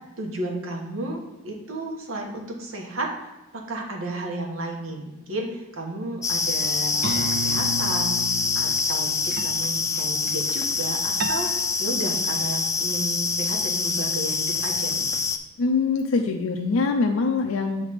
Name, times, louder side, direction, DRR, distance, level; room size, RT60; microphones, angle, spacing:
voice 1, 0.2-15.1, right 2 dB, 85° right, 1 dB, 1.3 m, -33 dB
sound 1, 6.2-15.4, left 4 dB, 15° left, 0.3 m, -25 dB
sound 2, 6.6-6.8 7.0-9.0 9.3-9.6 9.9-10.4 11.2-11.7, right 1 dB, 55° right, 0.5 m, -32 dB
voice 2, 15.6-17.8, left 4 dB, 85° left, 3 dB, 0.5 m, -23 dB
7.1 x 3.3 x 5.0 m, 1.0 s
head